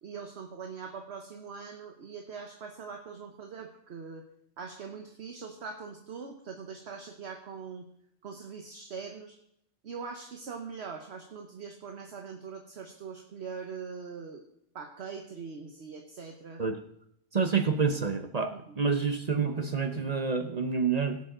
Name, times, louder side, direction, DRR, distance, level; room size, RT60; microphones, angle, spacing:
voice 1, 0.0-4.2 4.6-7.9 8.2-9.4 9.8-14.4 14.7-16.6 18.5-18.8, right 5 dB, 55° right, 3 dB, 1.2 m, -42 dB
voice 2, 17.3-21.2, right 5 dB, 40° right, 7 dB, 0.7 m, -28 dB
17.0 x 7.4 x 3.8 m, 0.72 s
omnidirectional pair, 1.3 m